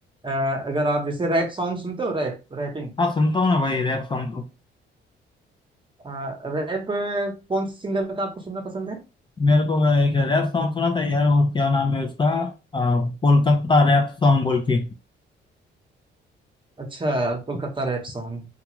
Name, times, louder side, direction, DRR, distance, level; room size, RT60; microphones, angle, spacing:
voice 1, 0.2-2.9 6.0-9.0 16.8-18.5, right 1 dB, 25° right, 0.9 m, -27 dB
voice 2, 3.0-4.5 9.4-14.9, left 3 dB, 25° left, 0.4 m, -20 dB
2.3 x 2.3 x 3.0 m
cardioid pair, 90°, 20 cm